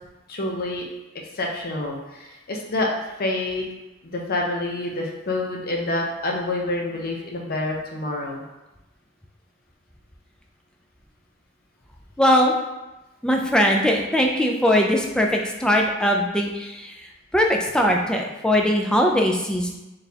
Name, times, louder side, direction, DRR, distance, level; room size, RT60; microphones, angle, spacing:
voice 1, 0.3-0.8 1.4-2.9 3.2-3.6 4.0-8.4, left 2 dB, 50° left, 0 dB, 0.7 m, -27 dB
voice 2, 12.2-12.5 13.2-16.9 17.3-19.7, equal, 5° left, 1 dB, 0.3 m, -20 dB
4.1 x 3.3 x 2.8 m, 1.0 s
head